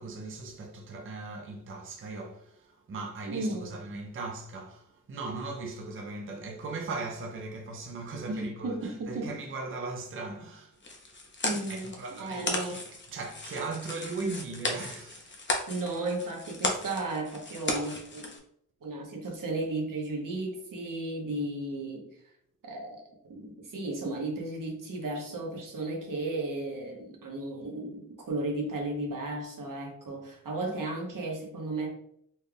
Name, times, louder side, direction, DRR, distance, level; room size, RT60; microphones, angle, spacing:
voice 1, 0.0-10.8 11.7-12.8 13.1-15.4, right 3 dB, 40° right, 0.5 m, -38 dB
voice 2, 3.3-3.8 8.3-9.3 11.4-12.8 15.7-18.3 18.8-22.1 22.6-23.0 23.3-31.9, right 2 dB, 80° right, 1.1 m, -34 dB
sound 1, 10.8-18.4, left 2 dB, 35° left, 0.7 m, -35 dB
4.2 x 2.3 x 3.3 m
wide cardioid pair, 115°, 32 cm